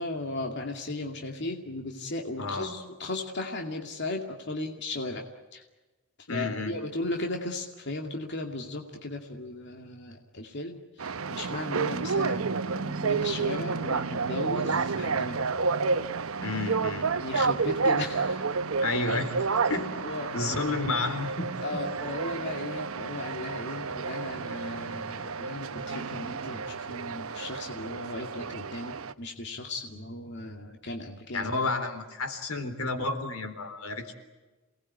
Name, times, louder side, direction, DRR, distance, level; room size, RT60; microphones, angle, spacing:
voice 1, 0.0-5.2 5.5-5.6 6.3-15.5 17.1-18.5 19.9-20.7 21.6-31.5, left 2 dB, 55° left, 2 dB, 2.4 m, -36 dB
voice 2, 2.4-2.8 6.3-6.8 16.4-17.0 18.8-19.4 19.7-20.0 20.3-21.8 31.3-34.1, left 3 dB, 85° left, 7 dB, 3.8 m, -31 dB
sound 1, 11.0-29.1, right 4 dB, 75° right, 0.9 m, -30 dB
28.5 x 20.0 x 9.4 m, 1.2 s
head